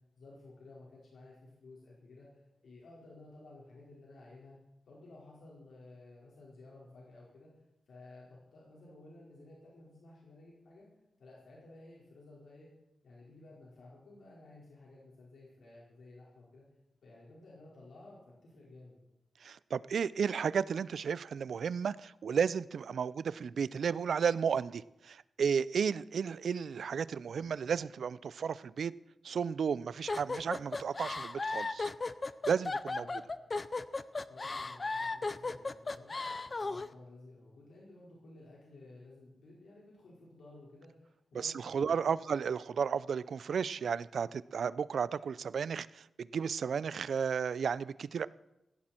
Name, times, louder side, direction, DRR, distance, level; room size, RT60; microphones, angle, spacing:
voice 1, 0.2-4.6 4.9-7.5 7.9-10.9 11.2-12.7 13.0-16.6 17.0-18.9 32.9-33.2 34.3-36.1 36.4-42.2, left 2 dB, 90° left, 4.7 m, -54 dB
voice 2, 19.4-28.9 29.2-31.9 32.5-33.1 41.4-48.3, right 6 dB, 70° right, 0.4 m, -33 dB
sound 1, 30.1-36.9, left 3 dB, 30° left, 0.5 m, -36 dB
17.0 x 16.0 x 4.4 m
wide cardioid pair, 170°, 0 cm